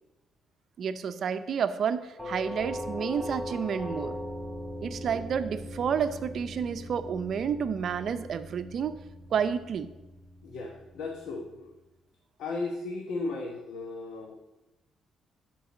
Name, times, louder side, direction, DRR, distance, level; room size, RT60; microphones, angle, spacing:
voice 1, 0.8-4.2 4.8-9.0 9.3-9.9, right 7 dB, 60° right, 11 dB, 0.6 m, -30 dB
Doorbell, 2.2-11.0, left 1 dB, 5° left, 3.1 m, -40 dB
voice 2, 10.4-11.7 12.4-14.3, left 3 dB, 75° left, 2 dB, 1.0 m, -35 dB
11.5 x 4.6 x 5.0 m, 1.0 s
cardioid pair, 90°, 0 cm